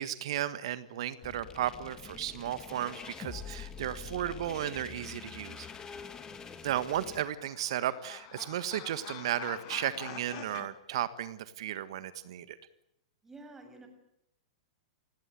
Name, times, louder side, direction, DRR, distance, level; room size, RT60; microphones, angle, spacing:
voice 1, 0.0-5.7 6.6-12.6, right 11 dB, 55° right, 15 dB, 1.5 m, -34 dB
sound 1, 1.2-7.2, left 6 dB, 20° left, 2.4 m, -45 dB
voice 2, 6.0-6.4 13.2-13.9, right 2 dB, 10° right, 4 dB, 7.0 m, -51 dB
sound 2, 6.9-10.7, left 13 dB, 45° left, 2.1 m, -46 dB
29.5 x 17.0 x 9.1 m, 0.83 s
figure-of-eight pair, 100°, 3 cm